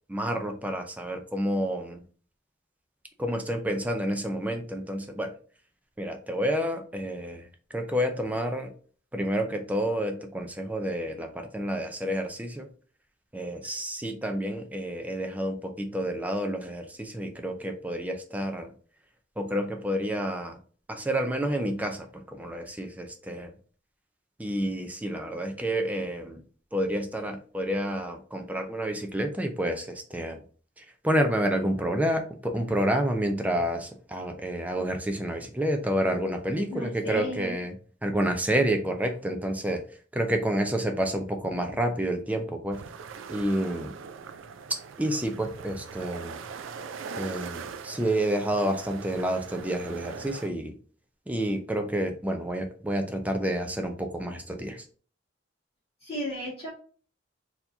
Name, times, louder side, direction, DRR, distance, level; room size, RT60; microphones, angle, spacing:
voice 1, 0.1-2.0 3.2-5.3 6.0-8.7 9.1-12.7 13.3-18.7 19.4-20.6 20.9-23.5 24.4-26.4 26.7-30.4 30.8-37.7 38.0-39.8 40.1-42.8 43.3-43.9 45.0-46.4 47.2-50.8 51.3-54.8, right 1 dB, 10° right, 4 dB, 0.4 m, -29 dB
voice 2, 36.7-37.5 56.0-56.7, equal, 30° left, -11 dB, 1.8 m, -34 dB
sound 1, 42.7-50.5, right 5 dB, 90° right, 0.4 m, -41 dB
4.4 x 2.8 x 2.7 m, 0.41 s
head